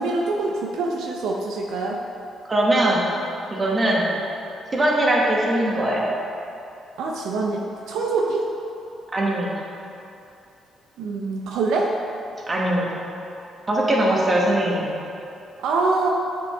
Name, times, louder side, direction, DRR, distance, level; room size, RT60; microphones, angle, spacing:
voice 1, 0.0-2.0 7.0-8.5 11.0-11.9 15.6-16.1, right 3 dB, 85° right, 0 dB, 0.6 m, -24 dB
voice 2, 2.5-3.1 3.5-4.1 4.7-6.1 9.1-9.6 12.5-13.0 13.7-14.9, right 1 dB, 30° right, -3 dB, 1.5 m, -21 dB
7.8 x 6.1 x 3.4 m, 2.7 s
cardioid pair, 90°, 0 cm